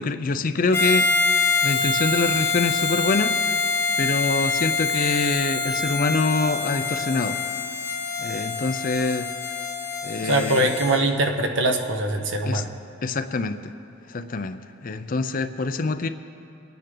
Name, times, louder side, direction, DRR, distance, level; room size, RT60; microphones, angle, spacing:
voice 1, 0.0-3.4 4.0-7.4 8.2-9.3 10.0-10.7 12.4-12.6 13.0-13.7 14.1-16.1, left 3 dB, 45° left, 10 dB, 0.5 m, -25 dB
Harmonica, 0.7-11.0, left 4 dB, 15° left, 1.5 m, -25 dB
voice 2, 10.1-12.7, right 2 dB, 65° right, 5 dB, 1.0 m, -22 dB
23.0 x 9.3 x 3.9 m, 2.7 s
head